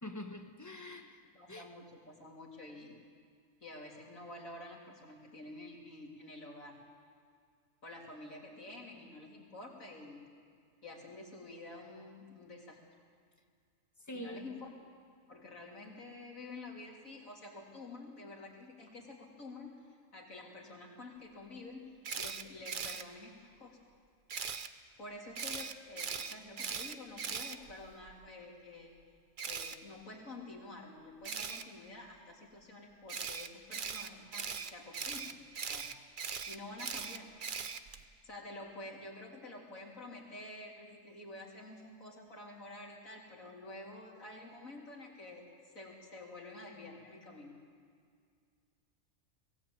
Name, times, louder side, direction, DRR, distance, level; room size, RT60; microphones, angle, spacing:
voice 1, 0.0-1.2 1.5-1.7 14.0-14.5, left 1 dB, 15° left, 4 dB, 1.5 m, -45 dB
voice 2, 1.4-3.0 3.6-6.8 7.8-10.4 10.8-12.8 14.1-14.7 15.3-21.9 22.2-23.8 25.0-28.9 29.4-35.9 36.5-37.3 38.2-47.6, left 2 dB, 85° left, -2 dB, 3.9 m, -49 dB
Camera, 22.0-23.0 24.3-24.7 25.4-28.1 29.4-29.8 31.2-31.6 33.1-38.0, right 6 dB, 45° right, 0.9 m, -40 dB
21.5 x 17.0 x 8.8 m, 2.2 s
omnidirectional pair, 1.4 m